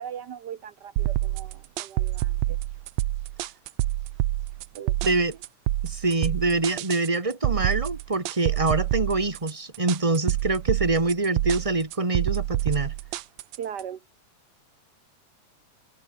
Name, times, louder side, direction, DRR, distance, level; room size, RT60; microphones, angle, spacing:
voice 1, 0.0-2.6 4.7-5.3 13.6-14.0, right 8 dB, 90° right, 0.9 m, -39 dB
sound 1, 1.0-13.8, right 16 dB, 70° right, 1.9 m, -27 dB
voice 2, 5.0-5.3 5.8-12.9, right 3 dB, 10° right, 1.9 m, -25 dB
omnidirectional pair, 3.5 m